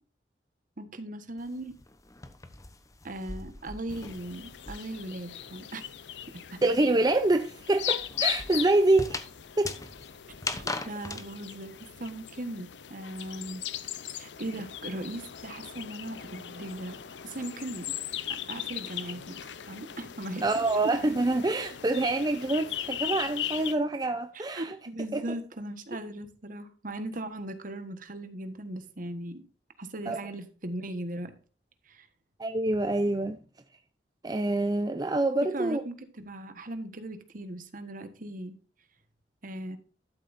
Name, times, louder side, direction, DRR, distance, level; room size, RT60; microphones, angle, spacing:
voice 1, 0.8-1.7 3.0-5.8 6.3-6.6 10.8-13.6 14.1-17.0 17.2-18.0 18.5-20.5 24.3-29.4 29.8-31.4 31.9-32.1 35.4-38.6 39.4-39.8, right 1 dB, 50° right, 1.4 m, -38 dB
sound 1, 1.4-5.1 5.4-11.3, left 3 dB, 20° left, 0.9 m, -40 dB
sound 2, 3.9-23.7, left 11 dB, 85° left, 0.7 m, -38 dB
voice 2, 6.6-9.2 9.6-9.7 20.4-24.8 25.1-25.4 30.1-30.3 32.4-33.4 34.2-35.8, right 2 dB, 25° right, 0.6 m, -26 dB
12.5 x 7.6 x 2.6 m
head